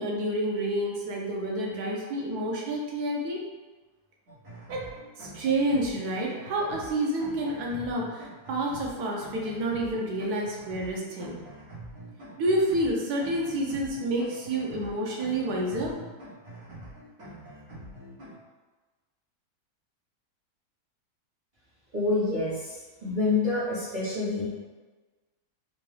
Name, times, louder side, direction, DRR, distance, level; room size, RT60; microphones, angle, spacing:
voice 1, 0.0-3.4 4.7-4.8 5.2-11.3 12.4-15.9, right 1 dB, 80° right, -2 dB, 1.3 m, -29 dB
sound 1, 4.3-18.4, right 1 dB, 50° right, 1.3 m, -45 dB
voice 2, 21.9-24.6, left 3 dB, 35° right, -11 dB, 1.0 m, -27 dB
3.9 x 2.3 x 3.1 m, 1.3 s
omnidirectional pair, 1.6 m